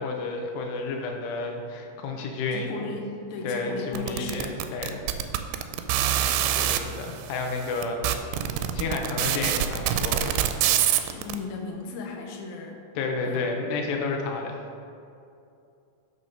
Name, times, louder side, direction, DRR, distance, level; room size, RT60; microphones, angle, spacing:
voice 1, 0.0-2.7 3.4-5.0 6.5-8.0 8.3-8.4 8.7-10.4 13.0-14.6, left 3 dB, 90° left, 2 dB, 2.8 m, -31 dB
voice 2, 2.5-4.6 11.0-12.8 13.2-13.6, left 4 dB, 70° left, 1 dB, 2.5 m, -36 dB
sound 1, 4.0-6.8 7.5-7.6 7.8-11.3, right 11 dB, 90° right, 2.7 m, -24 dB
6.6 x 6.3 x 5.5 m, 2.6 s
omnidirectional pair, 4.8 m